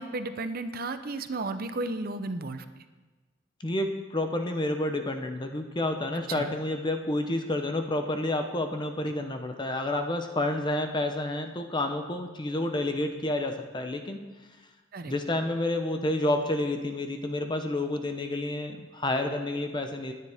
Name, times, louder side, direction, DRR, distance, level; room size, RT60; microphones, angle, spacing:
voice 1, 0.0-2.6 6.3-6.5 14.9-15.1, right 2 dB, 50° right, 10 dB, 0.7 m, -33 dB
voice 2, 3.6-14.2 15.1-20.1, left 1 dB, 25° left, 6 dB, 0.8 m, -29 dB
20.0 x 9.6 x 3.5 m, 1.2 s
head